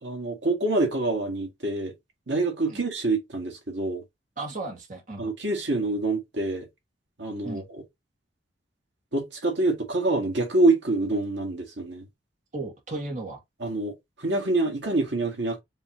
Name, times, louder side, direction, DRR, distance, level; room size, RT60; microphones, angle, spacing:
voice 1, 0.0-1.9 2.3-4.0 5.2-6.7 7.2-7.8 9.1-12.1 13.6-15.6, right 2 dB, 70° right, 1.8 m, -26 dB
voice 2, 4.4-5.3 7.4-7.6 12.5-13.4, right 2 dB, 40° right, 1.8 m, -35 dB
5.5 x 3.2 x 2.9 m
head